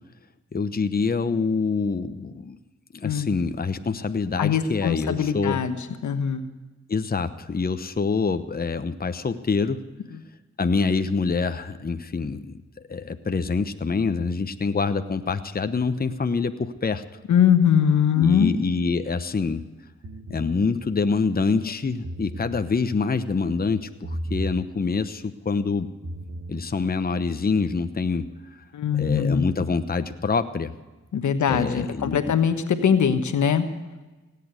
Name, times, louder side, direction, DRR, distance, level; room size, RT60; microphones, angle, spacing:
voice 1, 0.5-2.6 2.9-5.6 6.9-9.9 10.6-12.6 12.9-17.0 18.2-19.6 20.3-25.9 26.5-28.3 29.0-30.7 31.5-32.3, left 4 dB, 30° left, 9 dB, 0.9 m, -26 dB
voice 2, 4.4-5.8 6.0-6.4 17.3-18.5 28.7-29.5 31.1-33.7, left 7 dB, 75° left, 9 dB, 1.2 m, -21 dB
sound 1, 20.0-20.5 21.9-22.6 24.0-24.6 25.9-26.6, right 1 dB, 70° right, 2.4 m, -33 dB
18.0 x 8.6 x 8.2 m, 1.2 s
cardioid pair, 55°, 30 cm